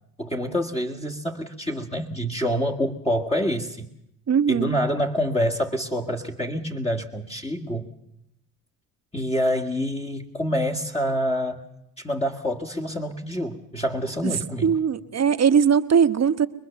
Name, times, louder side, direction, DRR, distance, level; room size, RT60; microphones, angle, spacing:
voice 1, 0.2-3.9 4.5-7.9 9.1-11.6 12.0-14.7, equal, 15° left, 0 dB, 1.9 m, -27 dB
voice 2, 4.3-4.8 14.2-14.3 14.6-16.5, right 7 dB, 35° right, 10 dB, 1.3 m, -20 dB
24.0 x 21.0 x 7.0 m, 0.80 s
hypercardioid pair, 65°, 43 cm